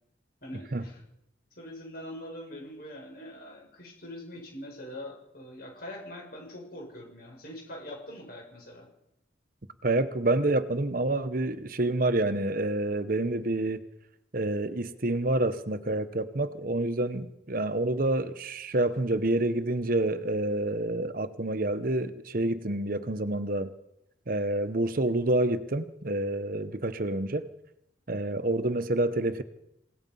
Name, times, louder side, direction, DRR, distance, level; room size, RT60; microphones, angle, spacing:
voice 1, 0.4-1.0 1.6-8.9, left 1 dB, 50° left, 1 dB, 6.7 m, -43 dB
voice 2, 9.8-13.8 14.3-23.7 24.3-27.5 28.1-29.4, right 2 dB, 50° right, 11 dB, 1.0 m, -28 dB
27.5 x 17.5 x 5.5 m, 0.84 s
head